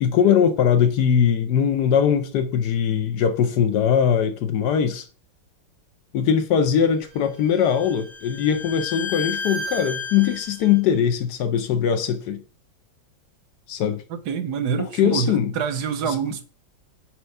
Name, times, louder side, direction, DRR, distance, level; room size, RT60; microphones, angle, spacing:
voice 1, 0.0-5.1 6.1-12.4 13.7-14.0 14.8-15.5 16.1-16.2, left 8 dB, 70° left, 1.1 m, -21 dB
Bowed string instrument, 7.0-10.8, left 4 dB, 40° left, 1.7 m, -33 dB
voice 2, 14.1-16.4, right 7 dB, 70° right, 1.1 m, -26 dB
4.4 x 4.4 x 5.3 m
omnidirectional pair, 2.0 m